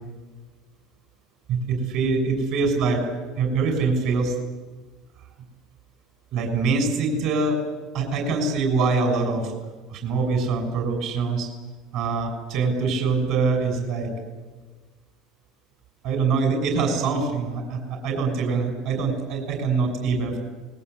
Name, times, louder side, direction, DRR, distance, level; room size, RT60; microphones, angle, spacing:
voice 1, 1.5-3.0 3.4-4.3 6.3-7.6 7.9-9.5 9.9-11.5 11.9-14.1 16.0-20.4, right 4 dB, 65° right, 4 dB, 6.5 m, -24 dB
27.0 x 20.5 x 8.3 m, 1.3 s
cardioid pair, 135°, 0 cm